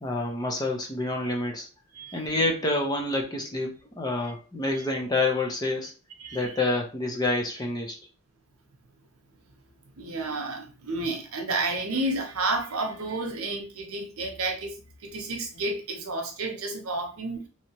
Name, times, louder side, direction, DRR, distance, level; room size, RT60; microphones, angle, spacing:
voice 1, 0.0-1.7 2.1-5.9 6.3-8.0, left 2 dB, 20° left, 0.6 m, -28 dB
voice 2, 6.2-6.5 10.0-17.5, right 2 dB, 90° right, 0.8 m, -31 dB
3.2 x 2.9 x 2.8 m
head